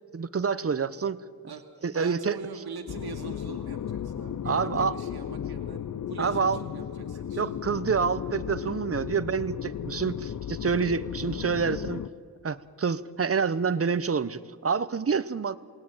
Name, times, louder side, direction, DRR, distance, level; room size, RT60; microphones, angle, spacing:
voice 1, 0.1-1.2 1.8-2.4 4.4-5.0 6.2-6.6 7.4-12.1 12.4-15.6, right 5 dB, 40° right, 15 dB, 0.8 m, -27 dB
voice 2, 1.9-5.8 6.1-7.6, right 5 dB, 80° right, 1 dB, 2.4 m, -42 dB
sound 1, 2.9-12.1, left 9 dB, 55° left, 0.7 m, -35 dB
28.0 x 18.5 x 9.0 m, 2.3 s
wide cardioid pair, 100°, 37 cm